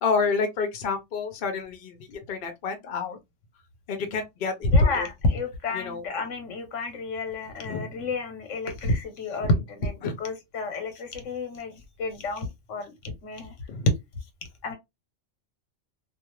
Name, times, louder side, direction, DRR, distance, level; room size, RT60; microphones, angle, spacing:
voice 1, 0.0-3.2 3.9-5.1 5.7-6.0 7.6-7.9 9.4-9.5 10.0-10.1 13.7-13.9, left 5 dB, 55° left, 0.8 m, -29 dB
voice 2, 4.7-13.5 14.6-14.7, left 2 dB, 90° left, 1.2 m, -29 dB
2.5 x 2.4 x 3.0 m
omnidirectional pair, 1.2 m